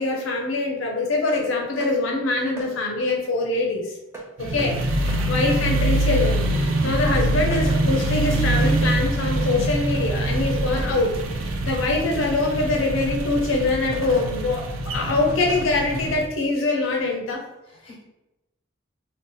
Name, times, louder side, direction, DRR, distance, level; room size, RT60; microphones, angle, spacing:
voice 1, 0.0-4.0 4.4-4.7 5.0-11.1 11.4-17.4, left 2 dB, 80° left, 0 dB, 0.5 m, -24 dB
sound 1, 1.3-1.5 1.8-2.0 2.6-2.7 4.1-4.3 4.6-4.7 5.1-5.2 6.6-6.7 7.2-7.8 8.6-8.8 9.1-9.2 10.8-10.9 12.5-12.6 13.9-14.3 15.3-15.7, right 1 dB, 15° right, 0.5 m, -37 dB
voice 2, 4.4-4.8 10.7-11.0 12.1-12.3 17.7-18.0, left 2 dB, 30° left, -4 dB, 1.0 m, -41 dB
sound 2, 4.4-16.3, right 1 dB, 80° right, 0.5 m, -24 dB
2.6 x 2.1 x 3.8 m, 0.96 s
head